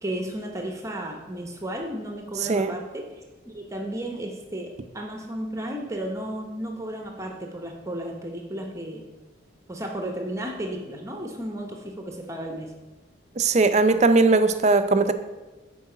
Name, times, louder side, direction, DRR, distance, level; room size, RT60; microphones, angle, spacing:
voice 1, 0.0-3.0 3.4-9.0 9.7-12.7, right 1 dB, 15° right, 2 dB, 0.8 m, -33 dB
voice 2, 13.4-15.1, right 3 dB, 35° right, 10 dB, 0.4 m, -19 dB
9.2 x 4.6 x 5.7 m, 1.2 s
head